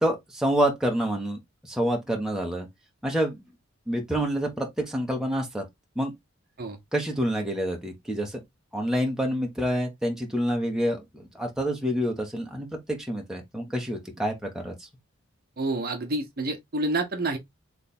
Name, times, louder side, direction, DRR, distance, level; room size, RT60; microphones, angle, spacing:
voice 1, 0.0-2.7 3.0-3.4 3.9-5.6 6.0-6.1 6.9-8.4 8.7-14.7, equal, 5° right, 1.1 m, -27 dB
voice 2, 15.6-17.4, right 2 dB, 45° right, 1.0 m, -28 dB
3.4 x 3.3 x 4.2 m
head